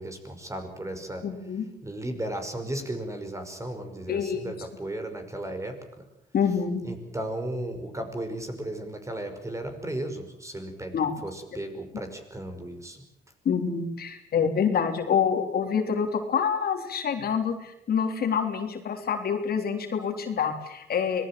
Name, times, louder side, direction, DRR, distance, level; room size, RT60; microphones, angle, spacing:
voice 1, 0.0-1.3 1.8-6.0 6.8-13.0, right 1 dB, 15° right, 6 dB, 5.6 m, -35 dB
voice 2, 1.2-1.6 4.1-4.5 6.3-6.8 10.9-11.2 13.5-21.3, left 7 dB, 60° left, 4 dB, 3.6 m, -27 dB
25.5 x 19.5 x 7.7 m, 0.80 s
cardioid pair, 90°, 17 cm